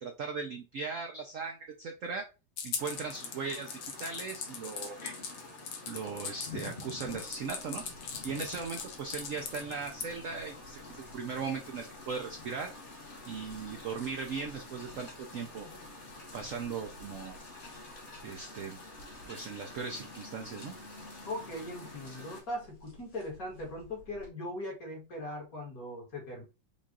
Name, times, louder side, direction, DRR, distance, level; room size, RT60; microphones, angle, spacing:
voice 1, 0.0-2.3 2.6-5.0 5.9-7.8 8.2-12.7 13.3-15.7 16.3-17.4 18.2-18.8 19.3-20.7, right 5 dB, 70° right, 0.7 m, -38 dB
sound 1, 2.6-10.1, left 6 dB, 90° left, 1.7 m, -40 dB
sound 2, 2.8-22.4, left 2 dB, 30° left, 1.1 m, -48 dB
sound 3, 7.1-24.3, left 1 dB, 70° left, 2.8 m, -57 dB
voice 2, 21.3-26.4, left 1 dB, 50° left, 2.0 m, -40 dB
5.6 x 2.4 x 3.7 m
omnidirectional pair, 2.1 m